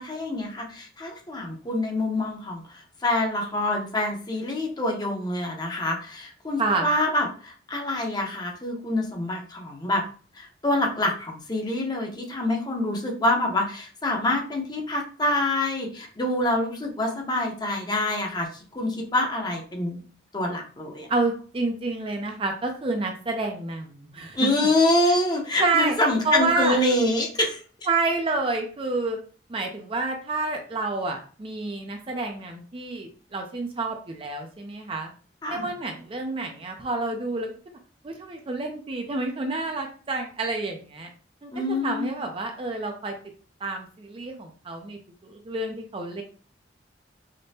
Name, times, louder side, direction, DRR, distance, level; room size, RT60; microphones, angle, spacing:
voice 1, 0.0-10.0 10.4-20.0 20.3-21.1 24.3-27.6 35.4-35.7 41.5-42.1, left 1 dB, 25° left, 1 dB, 0.7 m, -26 dB
voice 2, 6.6-6.9 21.1-24.7 25.1-25.2 25.6-25.9 26.2-26.8 27.9-29.2 29.5-35.1 35.5-37.5 38.0-41.1 41.4-43.1 43.6-46.2, right 3 dB, 30° right, 3 dB, 0.4 m, -29 dB
5.0 x 2.1 x 2.7 m, 0.41 s
head